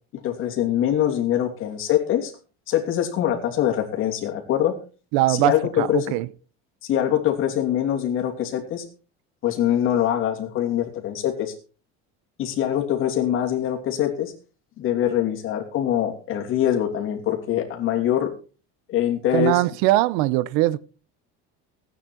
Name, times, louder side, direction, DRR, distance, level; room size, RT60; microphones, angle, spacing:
voice 1, 0.1-2.3 2.7-4.7 5.3-6.1 6.8-8.8 9.4-11.5 12.4-14.3 14.8-18.3 18.9-19.6, left 11 dB, 45° left, 2.9 m, -23 dB
voice 2, 5.1-6.3 19.3-20.8, right 17 dB, 75° right, 0.8 m, -21 dB
16.5 x 9.3 x 4.4 m
cardioid pair, 160°, 30 cm